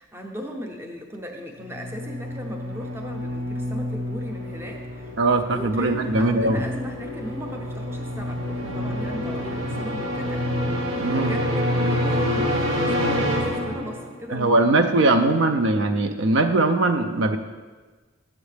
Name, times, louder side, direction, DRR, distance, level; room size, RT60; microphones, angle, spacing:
voice 1, 0.0-5.1 5.5-10.5 10.8-15.6, equal, 10° right, 2 dB, 0.6 m, -37 dB
sound 1, 1.6-14.2, equal, 85° right, 0.9 m, -27 dB
voice 2, 5.2-6.6 10.9-11.3 14.3-17.4, right 2 dB, 65° right, 7 dB, 0.4 m, -20 dB
8.0 x 7.2 x 3.3 m, 1.3 s
head